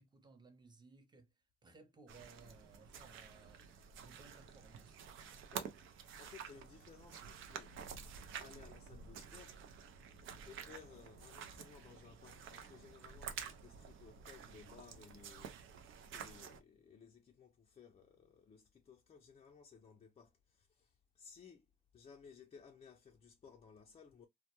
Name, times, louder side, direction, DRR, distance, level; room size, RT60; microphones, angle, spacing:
voice 1, 0.0-1.3 1.6-3.7 4.0-5.0, right 3 dB, 20° right, 0.6 m, -61 dB
sound 1, 2.1-16.6, right 7 dB, 80° right, 0.5 m, -50 dB
voice 2, 5.5-7.8 8.4-9.6 10.4-15.6 16.1-24.3, left 6 dB, 30° left, 0.4 m, -59 dB
2.1 x 2.1 x 2.8 m
cardioid pair, 90°, 20 cm